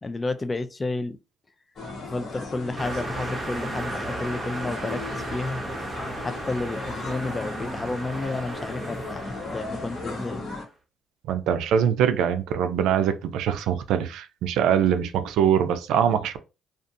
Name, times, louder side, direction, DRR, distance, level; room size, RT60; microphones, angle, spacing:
voice 1, 0.0-1.2 2.0-5.6 6.2-10.4, left 2 dB, 30° left, 0.4 m, -31 dB
sound 1, 1.8-10.6, left 2 dB, 60° left, 1.1 m, -36 dB
sound 2, 2.8-10.6, right 2 dB, 25° right, 0.8 m, -36 dB
voice 2, 11.2-16.4, right 8 dB, 80° right, 0.4 m, -23 dB
2.5 x 2.4 x 2.5 m
supercardioid pair, 65°, 0 cm